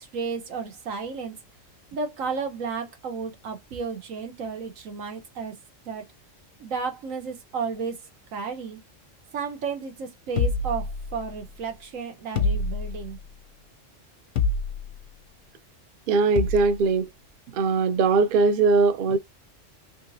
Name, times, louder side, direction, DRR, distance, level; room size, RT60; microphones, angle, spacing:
voice 1, 0.0-1.3 1.9-5.5 5.8-6.0 6.6-8.0 8.3-8.8 9.3-13.2, right 5 dB, 90° right, 1.4 m, -32 dB
sound 1, 10.4-11.5 12.4-13.2 14.4-15.0 16.4-16.8, left 4 dB, 85° left, 1.1 m, -27 dB
voice 2, 16.1-17.1 17.5-19.2, right 4 dB, 55° right, 0.6 m, -20 dB
3.6 x 2.9 x 2.6 m
omnidirectional pair, 1.3 m